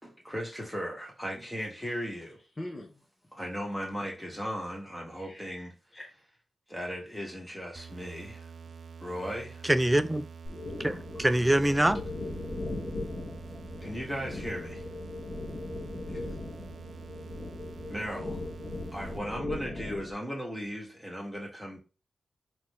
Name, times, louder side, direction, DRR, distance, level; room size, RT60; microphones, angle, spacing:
voice 1, 0.0-2.4 3.3-5.7 6.7-8.5 9.0-9.6 11.2-11.3 13.8-14.8 17.9-18.4 18.9-21.8, equal, 5° left, 2.1 m, -37 dB
voice 2, 2.6-3.0 4.8-6.1 16.0-16.4, left 1 dB, 25° left, 1.2 m, -45 dB
sound 1, 7.8-19.2, right 6 dB, 70° right, 0.4 m, -46 dB
voice 3, 9.6-10.3 10.8-12.0, right 1 dB, 15° right, 0.5 m, -24 dB
sound 2, 10.5-20.1, left 2 dB, 45° left, 1.5 m, -38 dB
3.9 x 3.1 x 3.4 m
cardioid pair, 60°, 0 cm